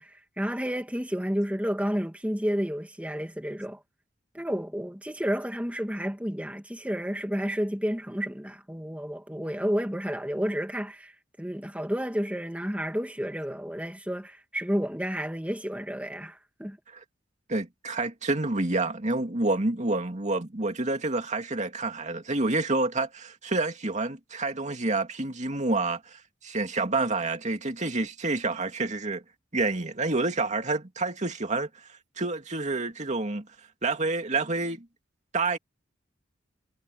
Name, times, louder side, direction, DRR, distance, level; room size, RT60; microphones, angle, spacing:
voice 1, 0.0-3.8 4.3-16.8, equal, 5° right, 2.3 m, -31 dB
voice 2, 17.5-29.2 29.5-31.7 32.2-33.5 33.8-34.9 35.3-35.6, right 3 dB, 40° right, 2.4 m, -28 dB
head